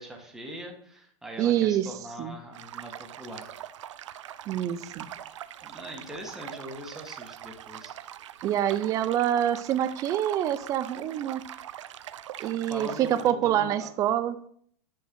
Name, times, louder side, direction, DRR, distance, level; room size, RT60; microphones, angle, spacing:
voice 1, 0.0-3.5 5.6-7.9 12.4-13.9, equal, 5° right, 0 dB, 1.5 m, -42 dB
voice 2, 1.4-1.9 2.2-2.4 4.5-5.1 8.4-11.4 12.4-14.4, right 11 dB, 20° right, 13 dB, 0.5 m, -26 dB
sound 1, 2.5-13.3, right 11 dB, 85° right, 0.6 m, -43 dB
10.5 x 4.6 x 6.1 m, 0.63 s
supercardioid pair, 160°, 15 cm